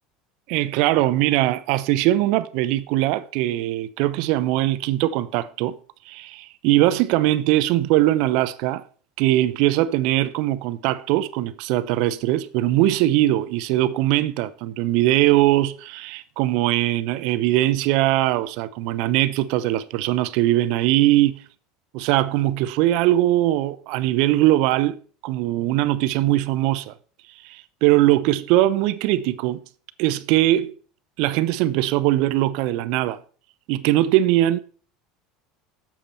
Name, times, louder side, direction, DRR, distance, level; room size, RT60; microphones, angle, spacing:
voice 1, 0.5-5.8 6.1-8.8 9.2-21.4 21.9-25.0 25.2-26.9 27.4-29.6 30.0-30.7 31.2-33.2 33.7-34.6, right 15 dB, 70° right, 0.6 m, -21 dB
7.2 x 6.7 x 4.3 m
supercardioid pair, 110°, 0 cm